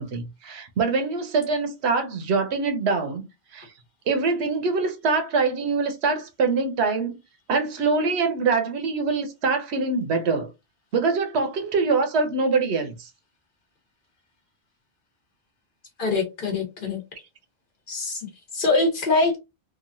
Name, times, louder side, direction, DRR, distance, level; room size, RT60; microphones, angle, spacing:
voice 1, 0.0-3.2 3.5-3.7 4.1-7.2 7.5-10.5 10.9-13.1, right 4 dB, 75° right, 0.9 m, -24 dB
voice 2, 16.0-17.0 17.9-19.4, left 3 dB, 50° left, 1.1 m, -24 dB
2.9 x 2.4 x 2.5 m
omnidirectional pair, 1.1 m